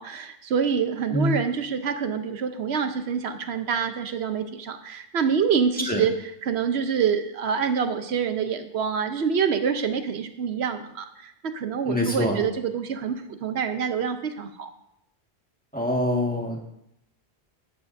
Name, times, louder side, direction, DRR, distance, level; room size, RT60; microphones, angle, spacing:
voice 1, 0.0-6.1 6.4-14.7, right 6 dB, 85° right, 8 dB, 1.1 m, -26 dB
voice 2, 1.1-1.4 5.9-6.0 11.9-12.4 15.7-16.6, left 1 dB, 10° left, -1 dB, 1.6 m, -25 dB
13.5 x 9.3 x 2.6 m, 0.80 s
omnidirectional pair, 1.1 m